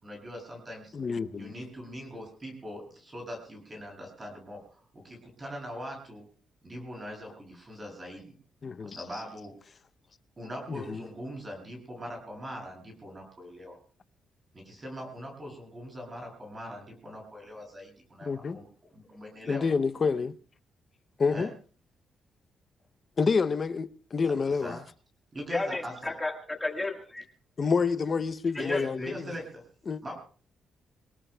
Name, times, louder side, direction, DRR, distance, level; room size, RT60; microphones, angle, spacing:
voice 1, 0.0-1.0 1.3-6.2 6.6-8.3 8.8-9.5 10.4-13.8 14.5-18.7 18.9-19.7 21.3-21.5 24.6-24.8 25.3-26.1 28.6-29.6 30.0-30.1, equal, 20° right, 7.7 m, -41 dB
voice 2, 0.9-1.6 8.6-9.0 10.7-11.0 18.2-18.6 19.5-20.4 21.2-21.5 23.2-24.8 27.6-29.3 29.9-30.0, left 5 dB, 30° left, 0.6 m, -28 dB
voice 3, 25.5-27.2 28.7-28.8, left 2 dB, 10° left, 1.6 m, -32 dB
25.5 x 19.0 x 2.3 m
cardioid pair, 160°, 0 cm